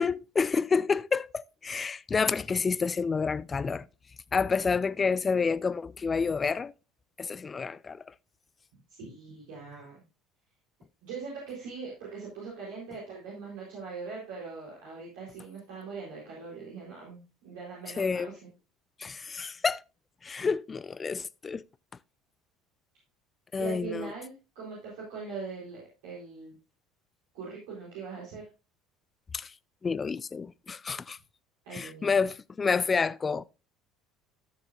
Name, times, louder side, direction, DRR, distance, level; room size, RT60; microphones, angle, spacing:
voice 1, 0.0-3.9 4.3-6.7 7.2-8.0 18.0-18.3 19.0-19.8 20.2-21.6 23.5-24.1 29.3-29.5 29.8-31.2 31.7-33.4, left 5 dB, 30° left, 0.5 m, -29 dB
voice 2, 9.0-10.0 11.0-18.4 23.6-26.5 27.3-28.5 31.6-32.1, right 4 dB, 75° right, 4.2 m, -41 dB
13.0 x 6.7 x 2.6 m
hypercardioid pair, 70°, 0 cm